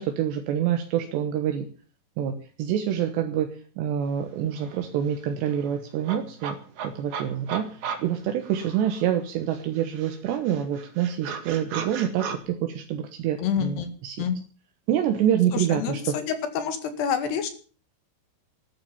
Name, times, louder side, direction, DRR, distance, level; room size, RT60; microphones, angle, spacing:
voice 1, 0.0-1.7 2.2-3.5 3.8-6.6 6.8-7.7 8.0-14.2 14.9-16.2, right 10 dB, 80° right, 6 dB, 3.4 m, -26 dB
sound 1, 4.2-4.3 4.6-9.2 9.5-12.4, right 6 dB, 50° right, 2.8 m, -37 dB
voice 2, 13.4-13.9 14.2-14.4 15.5-17.5, left 8 dB, 70° left, 9 dB, 4.0 m, -28 dB
14.0 x 12.0 x 7.1 m, 0.40 s
omnidirectional pair, 5.0 m